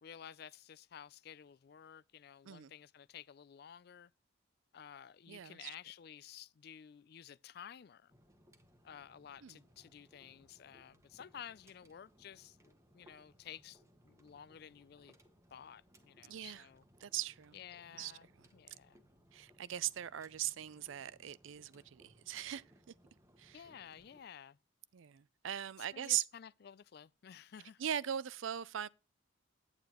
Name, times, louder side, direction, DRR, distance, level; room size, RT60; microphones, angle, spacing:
voice 1, 0.0-4.1 4.7-8.1 8.8-15.1 15.5-16.8 17.5-19.0 23.5-24.6 25.9-27.9, left 8 dB, 50° left, 0.3 m, -53 dB
voice 2, 5.3-5.7 9.4-9.6 16.3-16.7 17.0-17.6 18.0-18.1 19.3-22.9 23.4-23.6 24.9-26.2 27.8-28.9, right 11 dB, 75° right, 0.4 m, -40 dB
sound 1, 8.1-24.2, equal, 15° right, 1.1 m, -67 dB
9.4 x 8.9 x 3.0 m
head